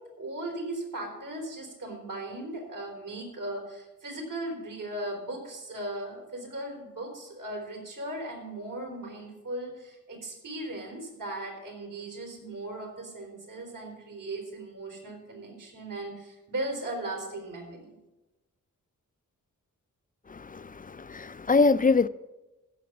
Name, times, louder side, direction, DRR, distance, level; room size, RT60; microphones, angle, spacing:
voice 1, 0.0-18.0, right 1 dB, 75° right, 4.2 m, -37 dB
voice 2, 20.3-22.1, left 4 dB, 25° left, 0.4 m, -24 dB
15.5 x 6.9 x 6.1 m
wide cardioid pair, 100°, 32 cm